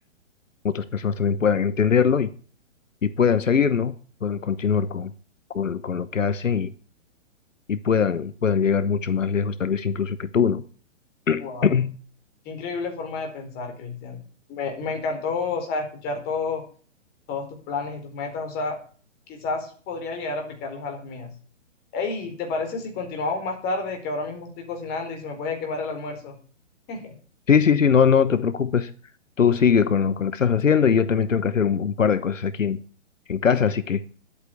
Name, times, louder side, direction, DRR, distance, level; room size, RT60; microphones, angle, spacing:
voice 1, 0.6-2.3 3.0-4.0 4.2-5.1 5.5-6.7 7.7-10.6 11.3-11.9 27.5-28.9 29.4-32.8 33.3-34.0, left 6 dB, 85° left, 15 dB, 1.0 m, -21 dB
voice 2, 11.4-11.7 12.4-14.2 14.5-16.6 17.3-18.8 19.3-21.3 21.9-26.4 26.9-27.1, left 3 dB, 25° left, 3 dB, 4.5 m, -30 dB
11.0 x 8.7 x 9.5 m, 0.42 s
hypercardioid pair, 130°, 38 cm